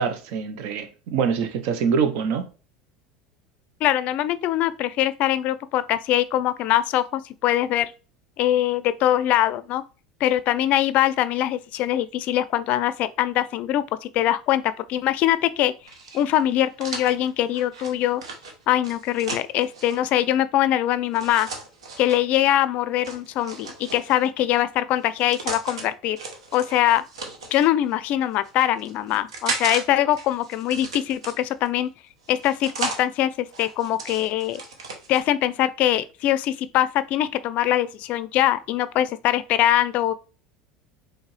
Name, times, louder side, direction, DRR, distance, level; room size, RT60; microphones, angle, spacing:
voice 1, 0.0-2.5, right 6 dB, 65° right, 0.8 m, -24 dB
voice 2, 3.8-7.9 8.4-9.8 10.2-15.7 16.1-18.2 18.7-21.5 22.0-26.2 26.5-27.0 27.5-31.9 32.3-34.6 35.1-40.1, left 13 dB, 55° left, 0.4 m, -22 dB
sound 1, 15.9-20.0 21.1-22.2 23.0-24.3 25.0-25.8 26.2-27.7 28.3-29.8 30.1-31.7 32.2-33.0 33.5-35.2, right 3 dB, 85° right, 0.9 m, -35 dB
4.5 x 3.2 x 3.1 m
hypercardioid pair, 85°, 3 cm